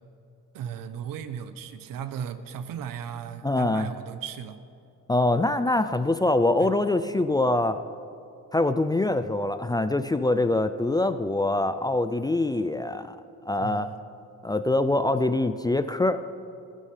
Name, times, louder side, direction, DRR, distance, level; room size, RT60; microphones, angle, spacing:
voice 1, 0.5-4.6 6.6-6.7 13.5-14.1, right 8 dB, 85° right, 11 dB, 0.9 m, -36 dB
voice 2, 3.4-3.9 5.1-7.8 8.5-13.2 13.5-13.9 14.4-16.2, left 2 dB, 15° left, 10 dB, 0.3 m, -24 dB
20.5 x 13.0 x 3.3 m, 2.7 s
cardioid pair, 125°, 33 cm